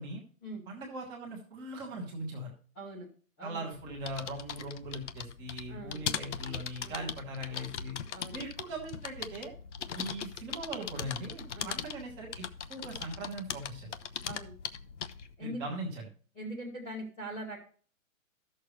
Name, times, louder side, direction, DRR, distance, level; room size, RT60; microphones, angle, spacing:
voice 1, 0.7-2.5 3.4-7.9 8.3-9.5 10.0-13.9 15.4-16.1, right 1 dB, 10° right, -1 dB, 1.0 m, -40 dB
voice 2, 2.7-3.1 3.4-3.7 5.7-6.0 6.8-7.1 8.1-8.4 9.9-10.1 11.5-11.8 14.3-14.6 15.4-15.7 16.3-17.6, right 1 dB, 10° left, -6 dB, 0.8 m, -42 dB
sound 1, 3.8-15.3, left 7 dB, 55° left, 0.7 m, -40 dB
13.0 x 6.5 x 3.1 m, 0.42 s
hypercardioid pair, 180°, 42 cm